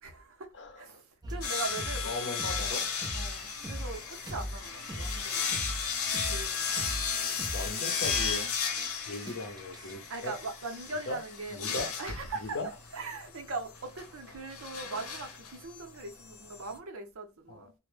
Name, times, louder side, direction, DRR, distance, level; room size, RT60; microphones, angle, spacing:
voice 1, 0.0-5.5 6.3-6.7 10.1-17.7, right 3 dB, 70° right, 0.7 m, -41 dB
sound 1, 1.2-9.9, equal, 20° right, 0.4 m, -40 dB
sound 2, 1.4-16.7, left 6 dB, 90° left, 0.7 m, -35 dB
voice 2, 2.0-2.8 7.1-8.5 9.1-10.3 11.1-11.2 11.5-11.9 12.5-12.7 17.5-17.7, left 2 dB, 55° left, 0.6 m, -38 dB
2.1 x 2.1 x 3.1 m
head